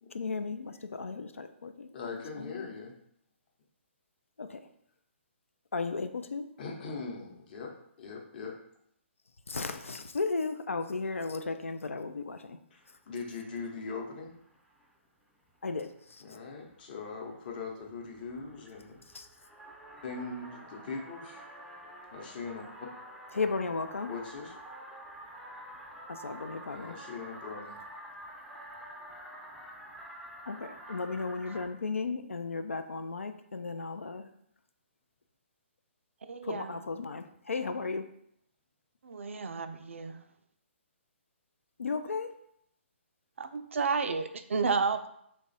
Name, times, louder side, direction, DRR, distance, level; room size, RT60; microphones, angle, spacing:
voice 1, 0.1-2.7 4.4-4.7 5.7-6.5 9.5-12.6 15.6-16.2 19.1-19.3 23.3-24.1 26.1-27.0 30.5-34.3 36.4-38.1 41.8-42.3, left 4 dB, 85° left, 8 dB, 0.3 m, -35 dB
voice 2, 1.9-2.9 6.6-7.7 8.0-8.5 12.7-14.3 16.2-19.0 20.0-21.5 22.1-22.7 24.1-24.5 26.6-27.8, left 4 dB, 45° left, 0 dB, 0.8 m, -41 dB
sound 1, 12.9-13.9 14.1-14.9 15.5-15.6 15.9-16.2 16.5-31.7, right 1 dB, ahead, 0.4 m, -48 dB
voice 3, 36.3-36.7 39.0-40.2 43.4-45.1, right 4 dB, 75° right, 9 dB, 0.4 m, -31 dB
3.1 x 2.3 x 4.1 m, 0.71 s
figure-of-eight pair, 135°, 7 cm